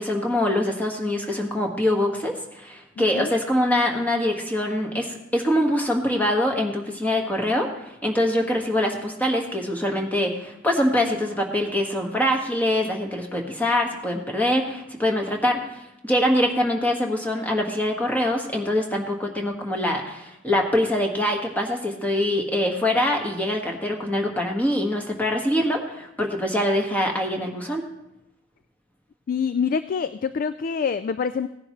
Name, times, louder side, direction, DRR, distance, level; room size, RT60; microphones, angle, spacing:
voice 1, 0.0-15.6 16.0-27.8, left 1 dB, 10° left, 1 dB, 1.5 m, -24 dB
voice 2, 3.0-3.3 29.3-31.5, left 6 dB, 45° left, 13 dB, 0.3 m, -26 dB
17.0 x 10.5 x 3.1 m, 0.86 s
head